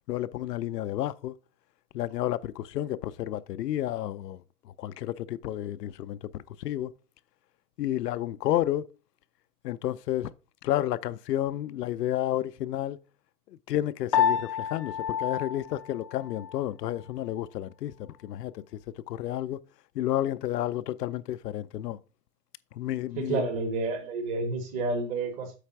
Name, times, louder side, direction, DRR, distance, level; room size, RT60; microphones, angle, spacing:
voice 1, 0.1-1.3 1.9-4.4 4.8-6.9 7.8-8.9 9.6-10.3 10.6-13.0 13.5-18.6 19.1-19.6 19.9-22.0 22.7-23.5, left 13 dB, 90° left, 0.6 m, -31 dB
Piano, 14.1-16.7, left 7 dB, 25° left, 0.4 m, -29 dB
voice 2, 23.2-25.6, right 3 dB, 15° right, 0.7 m, -30 dB
8.2 x 3.3 x 5.8 m
hypercardioid pair, 160°, 46 cm